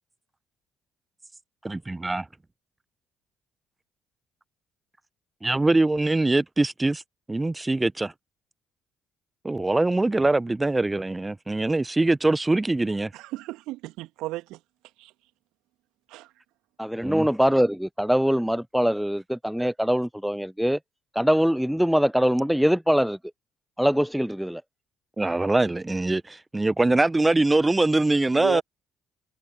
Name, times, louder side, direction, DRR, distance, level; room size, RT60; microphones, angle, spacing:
voice 1, 1.6-2.3 5.4-7.0 7.3-8.1 9.4-13.1 17.0-17.3 19.6-19.7 25.2-28.6, right 2 dB, 15° right, 1.4 m, -23 dB
voice 2, 13.1-14.6 15.0-15.1 16.1-16.3 28.3-28.6, right 18 dB, 65° right, 2.5 m, -34 dB
voice 3, 16.8-20.8 21.2-23.2 23.8-24.6, equal, ahead, 0.6 m, -23 dB
figure-of-eight pair, 45°, 0 cm